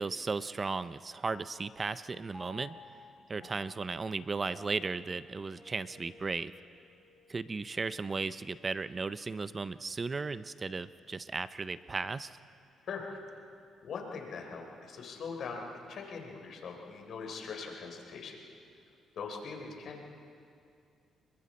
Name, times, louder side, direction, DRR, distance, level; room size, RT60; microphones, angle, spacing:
voice 1, 0.0-2.7 3.3-6.5 7.3-12.4, right 4 dB, 30° right, 14 dB, 0.5 m, -35 dB
Piano, 1.3-8.0, left 1 dB, 10° left, 4.4 m, -56 dB
voice 2, 13.8-18.4 19.1-20.0, left 5 dB, 65° left, 2 dB, 3.6 m, -42 dB
29.0 x 22.5 x 4.3 m, 2.4 s
cardioid pair, 90°, 0 cm